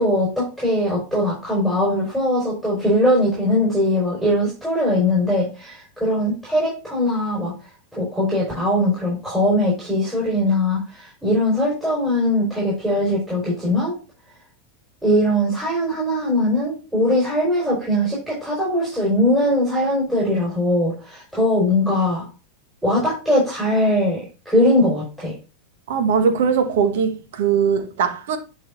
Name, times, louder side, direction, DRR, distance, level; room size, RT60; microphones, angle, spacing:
voice 1, 0.0-7.5 7.9-13.9 15.0-22.2 22.8-25.3, left 1 dB, 5° right, 4.5 m, -20 dB
voice 2, 25.9-28.4, right 6 dB, 65° right, 1.3 m, -20 dB
10.0 x 4.8 x 2.7 m
hypercardioid pair, 95°, 0 cm